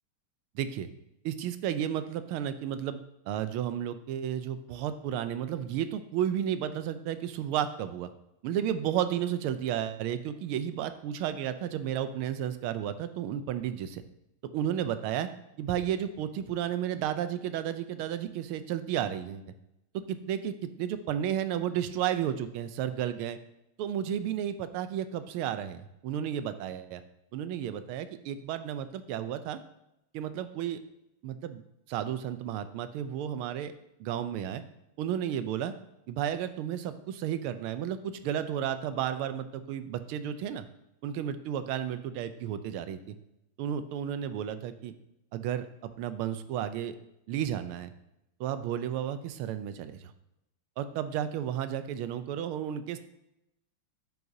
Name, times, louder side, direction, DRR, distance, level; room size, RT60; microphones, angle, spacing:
voice 1, 0.5-0.9 1.2-3.0 3.3-8.1 8.4-14.0 14.5-15.3 15.6-19.5 20.1-23.4 23.8-27.0 27.3-29.6 30.1-30.8 31.2-31.6 31.9-33.7 34.0-34.6 35.0-35.7 36.1-40.6 41.0-43.1 43.6-44.9 45.3-47.0 47.3-47.9 48.4-50.1 50.8-53.0, right 10 dB, 85° right, 11 dB, 1.5 m, -32 dB
9.7 x 7.9 x 2.7 m, 0.85 s
omnidirectional pair, 2.3 m